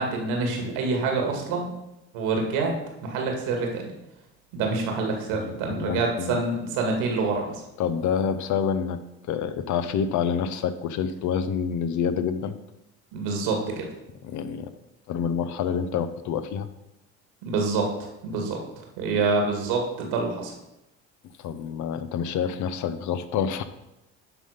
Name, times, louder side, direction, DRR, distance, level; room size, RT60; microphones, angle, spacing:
voice 1, 0.0-1.7 2.1-2.7 3.0-3.9 4.5-7.6 13.1-13.9 17.4-20.5, right 4 dB, 80° right, 2 dB, 2.2 m, -26 dB
voice 2, 5.4-6.4 7.8-9.0 9.3-12.6 14.2-14.7 15.1-16.7 21.4-23.6, left 7 dB, 60° left, 12 dB, 0.8 m, -27 dB
11.0 x 4.0 x 5.1 m, 0.91 s
supercardioid pair, 80°, 33 cm